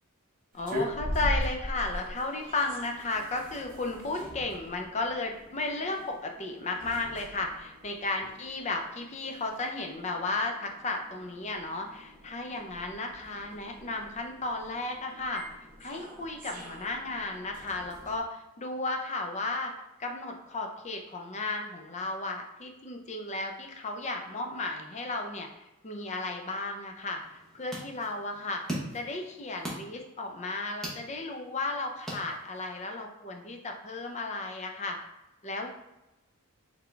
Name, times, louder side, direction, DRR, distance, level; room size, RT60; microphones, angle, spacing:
voice 1, 0.5-15.4 15.8-19.7 20.0-25.5 25.8-28.6 28.9-35.0 35.4-35.7, left 2 dB, 30° left, 3 dB, 0.5 m, -34 dB
sound 1, 0.5-18.2, equal, 40° right, 0.9 m, -41 dB
sound 2, 27.2-32.8, right 1 dB, ahead, 1.0 m, -42 dB
3.8 x 3.6 x 3.3 m, 0.96 s
head